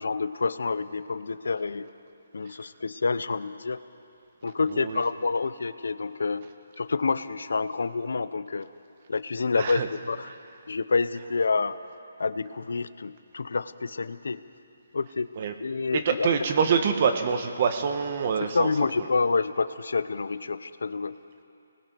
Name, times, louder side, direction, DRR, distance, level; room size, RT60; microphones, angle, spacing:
voice 1, 0.0-1.9 2.3-3.8 4.4-6.5 6.8-8.7 9.1-10.3 10.7-11.8 12.2-14.4 14.9-15.3 15.6-16.3 18.4-21.2, left 4 dB, 75° left, 14 dB, 0.8 m, -28 dB
voice 2, 9.6-9.9 15.4-15.5 15.9-18.7, right 6 dB, 30° right, 7 dB, 1.2 m, -25 dB
28.5 x 20.0 x 4.6 m, 2.6 s
hypercardioid pair, 175°, 0 cm